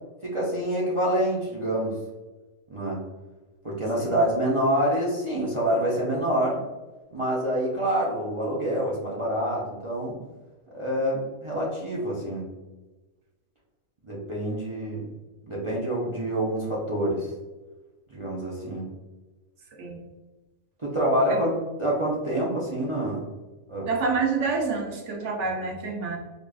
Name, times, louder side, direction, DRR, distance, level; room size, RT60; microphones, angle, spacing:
voice 1, 0.2-2.0 2.7-3.0 3.6-6.6 7.1-10.2 10.7-12.5 14.0-15.1 15.4-17.3 18.1-18.9 20.8-21.5 21.8-23.2 23.7-23.9, right 1 dB, 45° right, -6 dB, 0.4 m, -26 dB
voice 2, 23.9-26.2, right 4 dB, 65° right, 1 dB, 0.9 m, -27 dB
4.8 x 2.4 x 2.3 m, 1.2 s
omnidirectional pair, 1.5 m